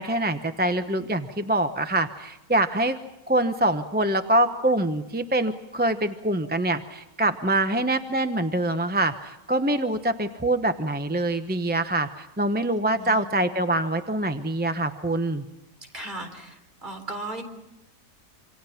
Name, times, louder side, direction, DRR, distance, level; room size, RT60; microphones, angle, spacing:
voice 1, 0.0-3.0 3.3-15.4, right 1 dB, 10° right, 8 dB, 0.6 m, -25 dB
voice 2, 15.9-17.4, right 2 dB, 30° right, 4 dB, 4.1 m, -36 dB
27.5 x 26.5 x 5.8 m, 0.92 s
omnidirectional pair, 1.6 m